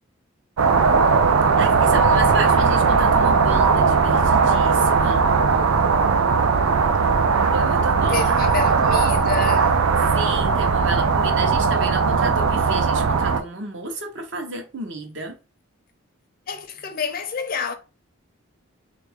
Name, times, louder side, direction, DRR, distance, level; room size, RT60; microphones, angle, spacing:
sound 1, 0.6-13.4, right 5 dB, 85° right, 0.5 m, -18 dB
voice 1, 1.6-5.3 7.5-8.4 10.0-15.3, right 2 dB, 60° right, 0.8 m, -31 dB
voice 2, 8.1-9.8 16.5-17.7, left 5 dB, 45° left, 0.5 m, -28 dB
3.5 x 2.4 x 3.4 m
head